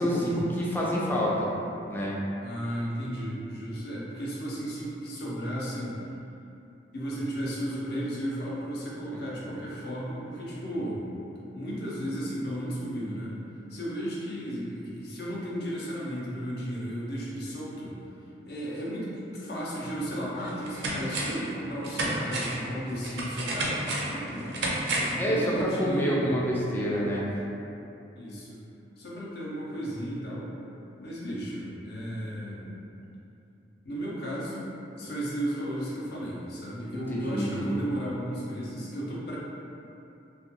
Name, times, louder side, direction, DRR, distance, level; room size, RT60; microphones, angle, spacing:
voice 1, 0.0-1.5 1.9-2.2 25.2-27.3 36.9-37.9, equal, 10° left, -5 dB, 0.3 m, -27 dB
voice 2, 2.4-6.0 6.9-11.1 11.5-13.4 13.7-18.0 18.4-24.6 25.1-26.4 28.1-28.6 29.0-30.5 31.0-32.8 33.8-39.4, equal, 60° left, -6 dB, 0.5 m, -34 dB
sound 1, 19.8-19.9 20.4-21.5 21.8-25.2 25.6-25.7, right 2 dB, 70° right, 0.4 m, -31 dB
2.4 x 2.2 x 2.8 m, 2.8 s
head